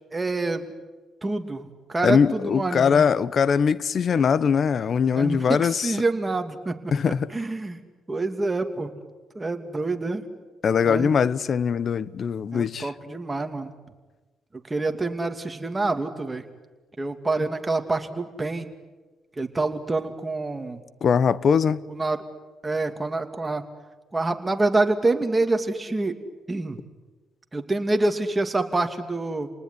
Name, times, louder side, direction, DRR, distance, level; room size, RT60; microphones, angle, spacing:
voice 1, 0.1-0.7 1.2-3.0 5.1-7.8 8.1-8.9 9.3-10.2 10.8-11.1 12.5-13.7 14.7-16.4 17.0-18.7 19.4-20.8 21.9-22.2 22.6-23.6 24.1-26.2 26.5-26.8 27.5-29.5, right 2 dB, 20° right, 2.7 m, -27 dB
voice 2, 2.0-6.0 6.9-7.3 10.6-12.9 21.0-21.8, left 6 dB, 50° left, 1.0 m, -21 dB
29.0 x 19.5 x 9.9 m
cardioid pair, 90°, 0 cm